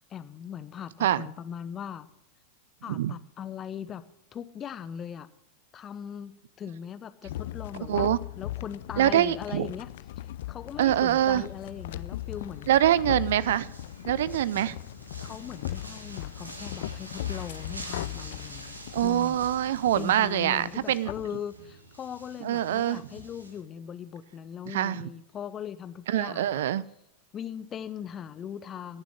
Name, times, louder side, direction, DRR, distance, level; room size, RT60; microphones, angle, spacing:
voice 1, 0.1-2.1 2.8-4.0 4.3-5.3 5.7-9.9 10.5-12.8 15.2-19.4 20.0-26.6 27.3-29.0, left 8 dB, 25° left, 13 dB, 0.9 m, -39 dB
sound 1, 7.2-21.3, left 14 dB, 55° left, 0.4 m, -38 dB
voice 2, 7.9-8.2 9.0-9.7 10.8-11.4 12.7-13.7 14.0-14.8 18.9-21.1 22.4-23.0 24.7-25.1 26.1-26.8, right 12 dB, 60° right, 21 dB, 0.4 m, -24 dB
sound 2, 10.9-23.6, right 1 dB, 80° right, 1.8 m, -47 dB
15.0 x 7.3 x 8.2 m, 0.80 s
figure-of-eight pair, 90°, 0 cm